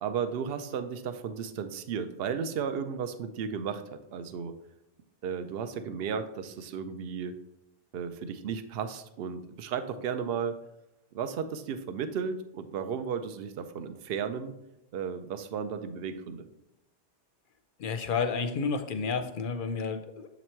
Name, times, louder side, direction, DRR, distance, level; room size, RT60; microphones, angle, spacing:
voice 1, 0.0-4.5 5.2-7.3 7.9-10.5 11.1-14.5 14.9-16.5, right 7 dB, 65° right, 9 dB, 0.7 m, -34 dB
voice 2, 17.8-20.3, left 5 dB, 60° left, 8 dB, 0.6 m, -31 dB
7.3 x 3.0 x 4.4 m, 0.87 s
omnidirectional pair, 1.1 m